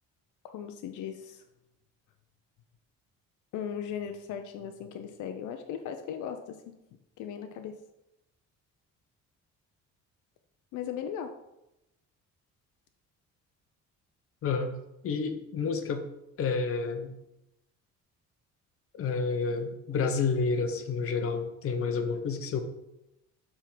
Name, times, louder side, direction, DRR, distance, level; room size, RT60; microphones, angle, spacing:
voice 1, 0.4-1.4 3.5-6.7 7.2-7.8 10.7-11.3, left 8 dB, 80° left, 7 dB, 0.7 m, -37 dB
voice 2, 14.4-14.7 15.0-16.0 16.4-17.1 18.9-22.6, left 4 dB, 50° left, 6 dB, 0.9 m, -29 dB
7.3 x 3.7 x 6.0 m, 0.90 s
cardioid pair, 135°, 30 cm